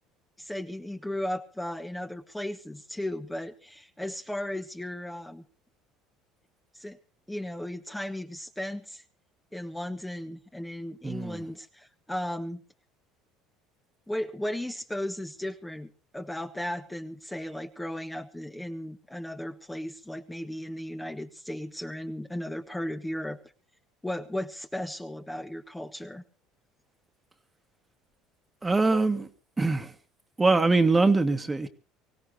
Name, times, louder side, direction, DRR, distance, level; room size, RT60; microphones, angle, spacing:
voice 1, 0.4-5.4 6.7-7.0 7.3-9.0 9.5-12.6 14.1-23.4 24.0-26.2, left 1 dB, 5° left, 1.3 m, -35 dB
voice 2, 11.0-11.5 28.6-29.3 29.6-29.9 30.4-31.7, right 3 dB, 20° right, 1.7 m, -23 dB
24.5 x 16.5 x 2.9 m
supercardioid pair, 85°, 0 cm